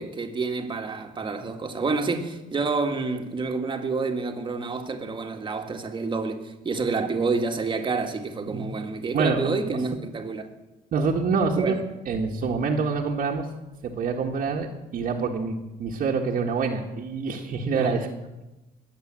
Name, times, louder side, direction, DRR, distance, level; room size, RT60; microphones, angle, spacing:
voice 1, 0.0-10.5 11.6-11.8 17.7-17.9, right 4 dB, 30° right, 1.9 m, -28 dB
voice 2, 9.1-9.8 10.9-11.8 12.1-13.5 13.8-14.7 14.9-18.1, right 4 dB, 55° right, 1.7 m, -26 dB
21.0 x 8.5 x 7.6 m
cardioid pair, 110°, 17 cm